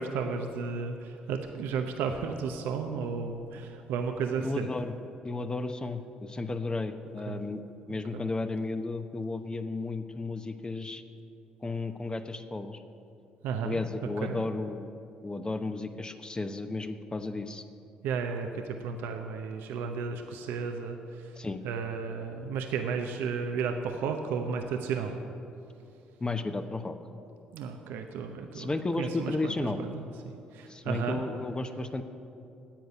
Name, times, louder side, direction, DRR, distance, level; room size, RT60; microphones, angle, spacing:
voice 1, 0.0-4.7 7.3-7.4 8.1-8.2 13.4-13.8 14.2-14.4 18.0-21.4 21.6-25.2 27.5-28.7 29.0-31.2, right 5 dB, 75° right, 5 dB, 0.8 m, -33 dB
voice 2, 4.4-4.9 5.2-7.6 7.9-11.0 11.6-12.8 13.6-14.9 15.2-17.6 21.4-21.6 26.2-27.0 28.5-29.8 30.7-32.0, left 3 dB, 25° left, 8 dB, 1.0 m, -33 dB
10.5 x 8.0 x 9.2 m, 2.7 s
hypercardioid pair, 55°, 4 cm